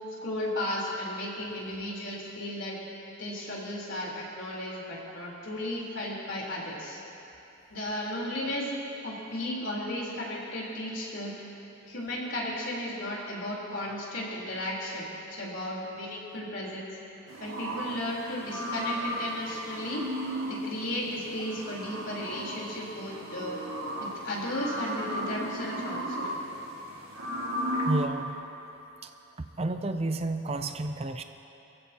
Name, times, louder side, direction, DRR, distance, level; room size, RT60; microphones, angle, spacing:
voice 1, 0.2-2.8 3.2-7.0 7.7-8.7 9.0-11.3 11.9-16.9 17.4-20.0 20.4-23.6 24.0-26.3, left 1 dB, 65° left, -4 dB, 3.8 m, -34 dB
sound 1, 17.3-28.1, equal, 85° right, 1.9 m, -35 dB
voice 2, 27.9-28.4 29.0-29.1 29.4-31.2, right 2 dB, 30° right, 7 dB, 0.5 m, -31 dB
25.5 x 15.5 x 2.9 m, 3.0 s
head